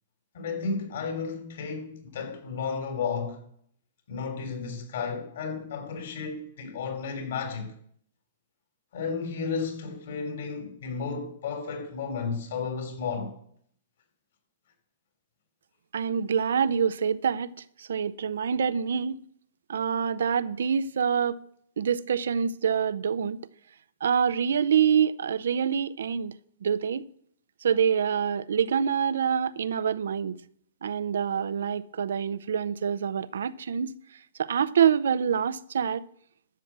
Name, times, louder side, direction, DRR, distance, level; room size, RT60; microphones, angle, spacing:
voice 1, 0.3-3.4 4.1-7.7 8.9-13.4, left 5 dB, 55° left, 3.3 m, -33 dB
voice 2, 15.9-17.5 17.8-19.2 19.7-21.4 21.8-23.4 24.0-26.3 26.6-27.0 27.6-30.4 30.8-33.9 34.4-36.0, right 7 dB, 85° right, 0.6 m, -26 dB
12.0 x 7.3 x 7.4 m
hypercardioid pair, 175°, 0 cm